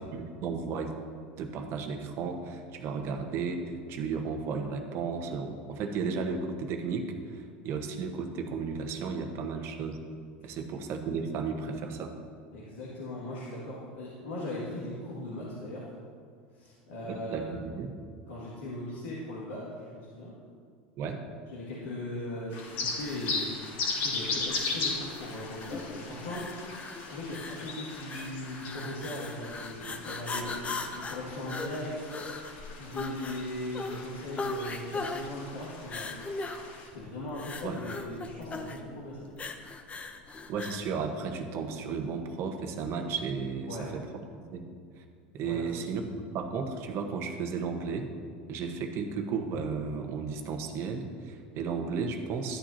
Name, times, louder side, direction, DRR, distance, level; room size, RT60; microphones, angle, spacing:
voice 1, 0.1-0.9 1.4-10.0 10.4-12.1 17.0-17.9 21.0-21.2 37.6-37.8 40.5-44.0 44.5-44.7 45.0-45.1 45.3-46.0 46.3-48.1 48.5-52.6, right 5 dB, 55° right, 5 dB, 1.2 m, -34 dB
voice 2, 12.5-15.9 16.5-17.5 18.3-20.4 21.5-23.5 24.0-26.5 27.0-30.6 30.9-32.1 32.8-36.2 36.9-39.3 43.6-43.9 45.4-45.7, left 1 dB, 85° left, -7 dB, 2.1 m, -39 dB
sound 1, 22.5-36.9, left 3 dB, 70° left, 2.5 m, -38 dB
sound 2, 23.0-40.9, left 3 dB, 25° left, 0.8 m, -39 dB
12.5 x 8.8 x 2.8 m, 2.1 s
hypercardioid pair, 100°, 5 cm